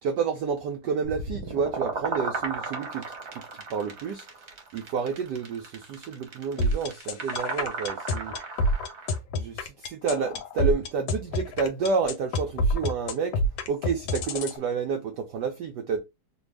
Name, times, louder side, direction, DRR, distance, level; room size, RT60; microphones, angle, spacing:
voice 1, 0.0-3.0 3.3-4.3 4.7-8.3 9.3-13.4 13.7-16.0, right 5 dB, 90° right, 0.9 m, -30 dB
sound 1, 1.0-9.2, right 4 dB, 55° right, 0.8 m, -35 dB
sound 2, 6.6-14.6, left 1 dB, 75° left, 1.4 m, -27 dB
3.4 x 2.3 x 3.2 m
omnidirectional pair, 2.4 m